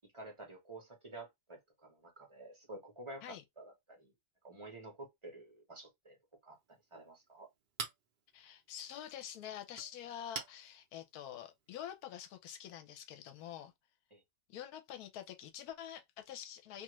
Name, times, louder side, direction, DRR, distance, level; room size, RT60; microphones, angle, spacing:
voice 1, 0.1-4.1 4.4-6.2 6.4-7.5 14.1-14.2, right 2 dB, 30° right, 0.6 m, -51 dB
Chink clink, 6.5-12.0, right 6 dB, 85° right, 0.4 m, -50 dB
voice 2, 8.3-13.7 14.5-16.8, left 10 dB, 75° left, 1.1 m, -47 dB
2.6 x 2.4 x 3.0 m
omnidirectional pair, 1.7 m